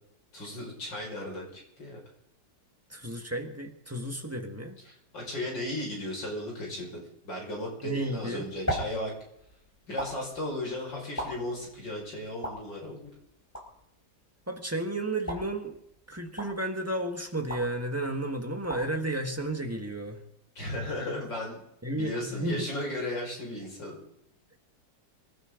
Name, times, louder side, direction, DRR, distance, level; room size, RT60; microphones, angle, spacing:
voice 1, 0.3-2.0 5.1-9.1 9.9-13.1 20.6-21.6 21.9-24.0, left 1 dB, 85° left, -1 dB, 6.3 m, -35 dB
voice 2, 2.9-4.8 7.8-8.5 14.5-15.8 16.1-20.2 21.8-22.7, right 1 dB, 10° right, 3 dB, 1.5 m, -32 dB
sound 1, 8.0-20.2, equal, 10° left, 4.5 m, -41 dB
25.5 x 12.5 x 3.9 m, 0.77 s
omnidirectional pair, 1.9 m